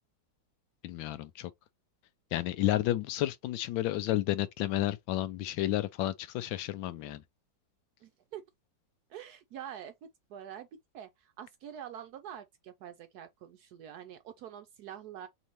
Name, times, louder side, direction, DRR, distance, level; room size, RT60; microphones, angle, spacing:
voice 1, 0.8-1.5 2.3-7.2, left 14 dB, 85° left, 1.4 m, -31 dB
voice 2, 8.0-8.4 9.1-10.7 10.9-15.3, right 10 dB, 70° right, 0.9 m, -46 dB
4.0 x 3.6 x 3.0 m
omnidirectional pair, 2.1 m